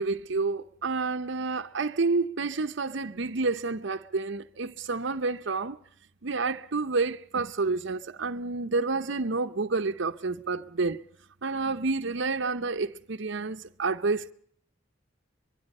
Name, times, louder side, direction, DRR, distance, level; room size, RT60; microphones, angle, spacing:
voice 1, 0.0-5.8 6.2-11.0 11.4-14.3, right 3 dB, 65° right, 0.8 m, -29 dB
24.0 x 23.0 x 5.4 m
head